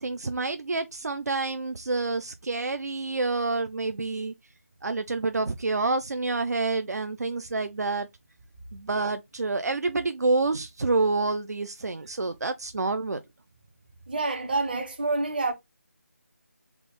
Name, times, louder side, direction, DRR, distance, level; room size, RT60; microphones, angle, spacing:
voice 1, 0.0-4.3 4.8-8.1 8.7-13.2, right 3 dB, 85° right, 0.4 m, -28 dB
voice 2, 14.1-15.5, right 3 dB, 35° right, 0.6 m, -27 dB
3.5 x 2.0 x 3.6 m
figure-of-eight pair, 170°, 9 cm